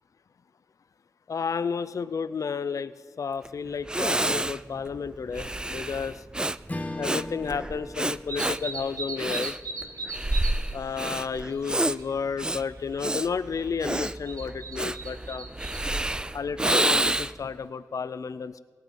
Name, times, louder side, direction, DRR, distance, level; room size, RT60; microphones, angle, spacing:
voice 1, 1.3-2.9 3.2-6.2 7.0-9.5 10.7-15.5 16.3-18.6, left 6 dB, 60° left, 15 dB, 0.4 m, -32 dB
Breathing, 3.4-3.5 3.9-17.5, right 1 dB, 15° right, 0.3 m, -29 dB
Strum, 6.7-11.3, left 1 dB, 25° left, 1.1 m, -40 dB
sound 1, 8.3-10.6 10.9-12.1 12.4-13.0 13.9-15.8, right 3 dB, 70° right, 1.0 m, -37 dB
17.5 x 7.7 x 5.3 m, 1.5 s
cardioid pair, 45°, 6 cm